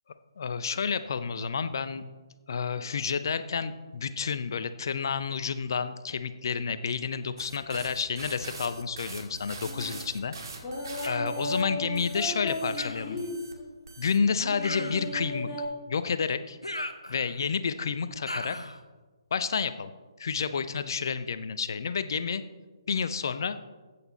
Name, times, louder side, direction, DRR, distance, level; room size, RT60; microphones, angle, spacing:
voice 1, 0.4-2.0 2.5-10.4 11.1-13.2 14.0-15.5 15.9-16.6 17.1-18.6 19.3-19.9 20.2-22.4 22.9-23.6, left 6 dB, 50° left, 12 dB, 0.7 m, -30 dB
sound 1, 7.4-11.6 11.9-12.8 13.2-13.5 13.9-14.2, right 4 dB, 50° right, 2.0 m, -43 dB
sound 2, 9.7-10.0 10.6-13.6 14.4-15.7, left 1 dB, 15° left, 3.7 m, -35 dB
Human voice, 11.0-11.4 12.8-13.2 14.6-15.2 16.6-17.5 18.3-18.8, left 1 dB, 80° left, 0.9 m, -37 dB
13.5 x 8.6 x 4.1 m, 1.3 s
figure-of-eight pair, 135°, 3 cm